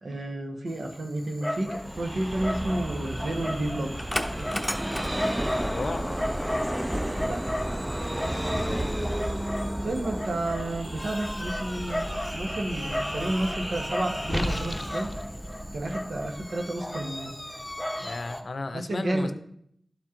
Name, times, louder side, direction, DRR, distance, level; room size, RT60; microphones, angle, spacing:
voice 1, 0.0-3.9 4.4-4.6 7.2-7.5 9.8-15.1 15.7-17.3 18.7-19.3, right 1 dB, 85° right, 2 dB, 1.2 m, -31 dB
Dog, 0.7-18.4, left 1 dB, 10° left, 0.9 m, -34 dB
Vehicle, 1.6-17.1, right 1 dB, 10° right, 0.5 m, -33 dB
sound 1, 1.8-6.6 10.4-15.1, equal, 40° right, 3.1 m, -42 dB
voice 2, 5.7-6.1 8.5-8.9 18.0-19.3, left 2 dB, 70° left, 11 dB, 0.6 m, -34 dB
11.5 x 4.4 x 3.7 m, 0.67 s
cardioid pair, 50°, 0 cm